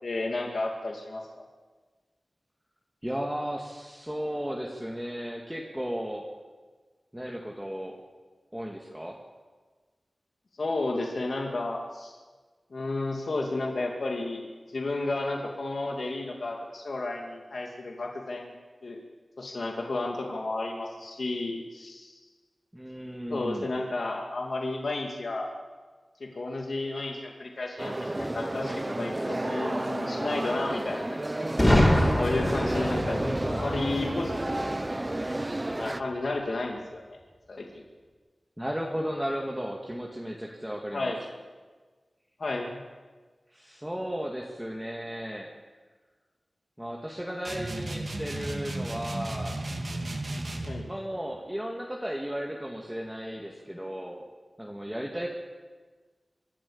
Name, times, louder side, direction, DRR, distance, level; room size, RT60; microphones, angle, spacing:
voice 1, 0.0-1.4 10.6-12.2 12.7-18.5 18.8-19.0 19.4-22.2 23.3-25.5 26.2-31.2 32.2-33.2 33.5-34.7 35.8-37.2 37.5-37.8 40.9-41.2 42.4-42.8 50.7-50.9, left 2 dB, 70° left, 1 dB, 2.3 m, -32 dB
voice 2, 3.0-6.3 7.1-8.0 8.5-9.2 22.7-23.7 38.6-41.1 43.5-45.5 46.8-49.6 50.8-54.3 54.6-55.3, equal, 5° right, -1 dB, 2.1 m, -35 dB
sound 1, 27.8-36.0, right 1 dB, 25° right, 0.7 m, -31 dB
Boom, 31.6-35.4, left 1 dB, 10° left, 4.7 m, -25 dB
sound 2, 47.4-50.8, right 1 dB, 55° right, 3.0 m, -34 dB
25.5 x 12.0 x 8.7 m, 1.4 s
wide cardioid pair, 85°, 0 cm